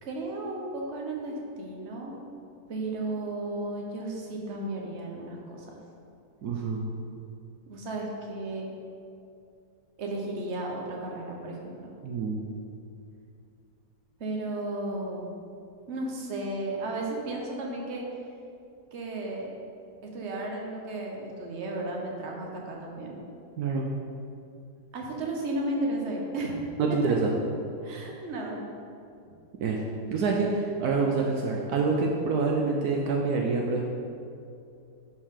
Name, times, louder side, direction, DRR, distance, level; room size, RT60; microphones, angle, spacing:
voice 1, 0.0-2.2 2.7-5.6 7.7-8.7 10.0-11.9 14.2-15.3 15.9-18.0 18.9-19.5 20.1-23.2 24.9-26.6 26.9-27.0 27.8-28.6, right 2 dB, 50° right, -1 dB, 1.2 m, -34 dB
voice 2, 6.4-6.8 12.0-12.4 23.6-23.9 26.8-27.3 29.6-29.8 30.1-33.8, right 4 dB, 75° right, 0 dB, 1.2 m, -26 dB
11.0 x 4.5 x 3.8 m, 2.5 s
omnidirectional pair, 1.7 m